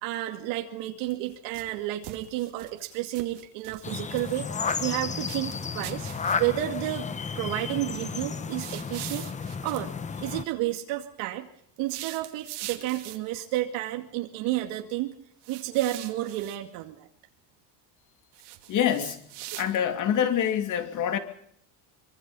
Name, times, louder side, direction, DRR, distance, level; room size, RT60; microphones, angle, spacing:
voice 1, 0.0-6.1 6.4-9.3 9.6-11.5 11.8-15.2 15.5-17.1, right 15 dB, 80° right, 4 dB, 2.4 m, -31 dB
sound 1, 1.0-1.7 2.0-4.9 5.2-6.6 8.6-9.9 11.8-13.4 15.4-16.6 18.3-20.0, right 15 dB, 60° right, 2.7 m, -42 dB
sound 2, 3.8-10.4, left 5 dB, 15° left, 0.9 m, -33 dB
voice 2, 18.7-19.2 19.6-21.2, left 9 dB, 40° left, 7 dB, 3.0 m, -25 dB
25.0 x 24.5 x 5.5 m, 0.65 s
cardioid pair, 175°, 45 cm